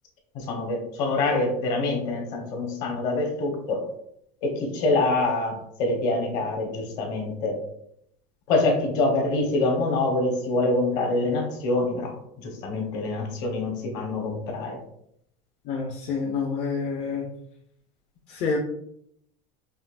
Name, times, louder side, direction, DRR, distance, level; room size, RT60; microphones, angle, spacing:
voice 1, 0.3-3.8 4.4-7.6 8.5-14.8, left 2 dB, 60° left, 1 dB, 1.3 m, -25 dB
voice 2, 15.7-17.3 18.3-18.6, left 5 dB, 45° left, 1 dB, 0.6 m, -28 dB
5.5 x 2.7 x 2.5 m, 0.72 s
cardioid pair, 150°, 14 cm